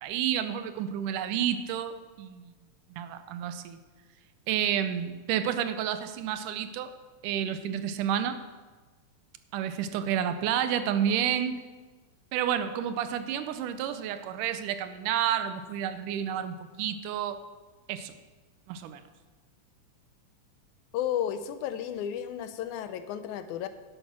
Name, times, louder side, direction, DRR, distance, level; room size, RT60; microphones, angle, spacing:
voice 1, 0.0-2.5 2.9-3.8 4.5-6.9 7.2-8.4 9.5-11.6 12.3-17.4 17.9-18.1 18.7-19.0, right 9 dB, 80° right, 11 dB, 2.2 m, -30 dB
voice 2, 20.9-23.7, left 10 dB, 80° left, 11 dB, 1.9 m, -33 dB
10.5 x 8.0 x 6.0 m, 1.3 s
omnidirectional pair, 3.7 m